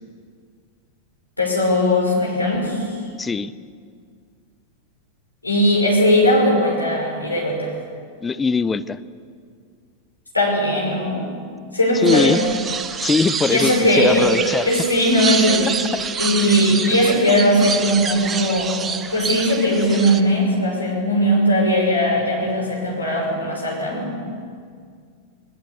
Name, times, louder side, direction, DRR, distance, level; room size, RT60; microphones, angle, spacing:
voice 1, 1.4-3.0 5.4-7.7 10.3-11.3 11.7-12.5 13.5-14.3 14.6-15.7 16.2-18.8 19.1-24.2, equal, 85° left, -1 dB, 5.8 m, -19 dB
voice 2, 3.2-3.5 8.2-9.0 12.0-12.4 13.0-14.7, left 4 dB, 15° left, 15 dB, 0.7 m, -21 dB
sound 1, 12.1-20.2, right 6 dB, 20° right, 1.1 m, -27 dB
20.0 x 19.5 x 8.2 m, 2.1 s
figure-of-eight pair, 90°, 0 cm